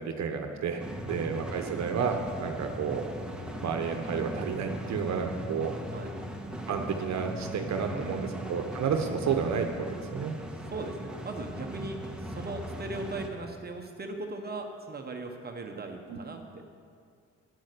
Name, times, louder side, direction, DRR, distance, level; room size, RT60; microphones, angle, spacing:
voice 1, 0.0-3.0 3.6-5.7 6.7-10.3 16.1-16.2, right 6 dB, 65° right, 5 dB, 1.1 m, -31 dB
voice 2, 0.7-1.2 4.8-5.3 5.9-6.3 7.9-8.5 10.5-16.8, right 2 dB, 30° right, 3 dB, 1.1 m, -39 dB
sound 1, 0.8-13.3, equal, 5° right, 1.4 m, -39 dB
10.0 x 9.7 x 6.7 m, 2.2 s
cardioid pair, 90°, 30 cm